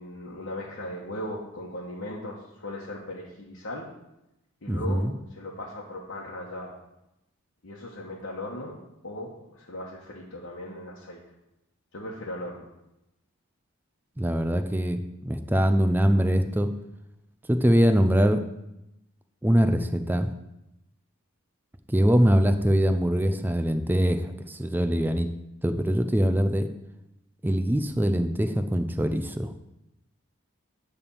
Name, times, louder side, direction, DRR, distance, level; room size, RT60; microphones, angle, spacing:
voice 1, 0.0-3.9 4.6-5.1 5.3-6.7 7.6-11.2 11.9-12.7, left 1 dB, 55° left, -4 dB, 1.2 m, -38 dB
voice 2, 4.7-5.1 14.2-16.7 17.5-18.4 19.4-20.3 21.9-25.3 25.6-26.7 27.4-29.5, equal, 10° right, 8 dB, 0.4 m, -23 dB
9.5 x 3.5 x 7.0 m, 0.90 s
head